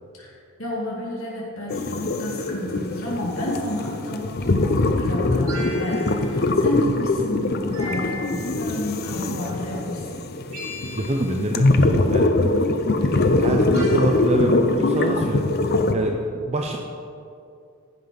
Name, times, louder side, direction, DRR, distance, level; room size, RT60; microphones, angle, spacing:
voice 1, 0.2-10.0, left 1 dB, 65° left, -4 dB, 2.2 m, -31 dB
sound 1, 1.7-15.9, left 2 dB, 45° left, 0.6 m, -22 dB
sound 2, 5.5-6.4 7.7-8.7 10.5-11.4 13.7-14.3, left 1 dB, 70° right, 2.5 m, -37 dB
voice 2, 10.8-12.6 12.9-16.8, right 1 dB, 30° right, 2 dB, 0.6 m, -26 dB
15.0 x 5.7 x 5.2 m, 2.4 s
head